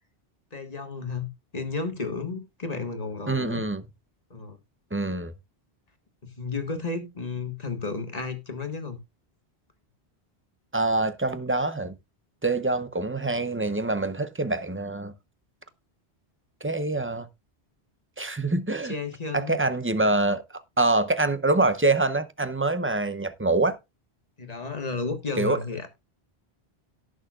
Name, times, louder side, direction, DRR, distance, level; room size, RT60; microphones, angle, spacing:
voice 1, 0.5-3.6 4.3-4.6 6.4-9.0 18.8-19.6 24.4-26.0, left 4 dB, 40° left, 1.7 m, -33 dB
voice 2, 3.3-3.8 4.9-5.3 10.7-11.9 12.4-15.1 16.6-17.3 18.2-18.9 19.3-20.4 20.8-23.8 25.4-25.6, right 2 dB, 15° right, 0.5 m, -25 dB
17.5 x 6.4 x 2.4 m
omnidirectional pair, 1.1 m